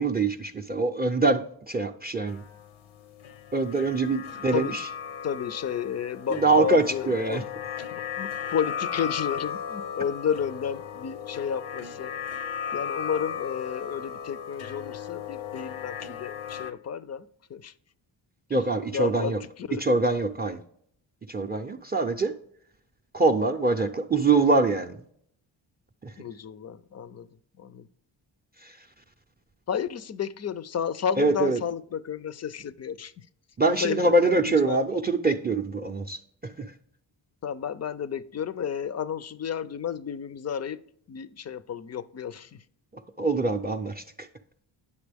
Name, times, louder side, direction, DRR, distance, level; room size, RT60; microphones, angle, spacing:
voice 1, 0.0-2.4 3.5-4.8 6.3-7.4 18.5-19.4 19.8-20.6 21.3-22.3 23.1-25.0 31.2-31.6 33.6-36.2 43.2-44.0, right 3 dB, 20° right, 0.4 m, -24 dB
sound 1, 2.3-16.7, left 7 dB, 90° left, 0.8 m, -36 dB
voice 2, 4.1-4.8 5.2-7.4 7.9-12.1 12.7-17.2 17.5-17.7 18.9-19.8 26.2-27.3 27.6-27.9 29.7-33.2 33.8-34.8 37.4-40.8 41.1-42.6, left 7 dB, 35° left, 0.4 m, -32 dB
9.5 x 6.6 x 3.4 m
cardioid pair, 95°, 46 cm